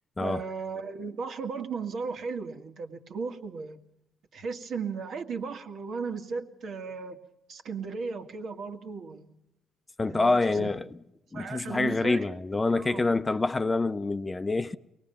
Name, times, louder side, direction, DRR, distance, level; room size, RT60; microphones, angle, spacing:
voice 1, 0.2-3.8 4.3-7.2 7.5-9.3 10.1-10.7 11.3-12.3 12.7-13.0 13.3-13.4, right 5 dB, 65° right, 2.0 m, -36 dB
voice 2, 10.0-10.8 11.3-14.8, left 3 dB, 20° left, 0.7 m, -26 dB
23.5 x 19.0 x 7.1 m
cardioid pair, 90°, 0 cm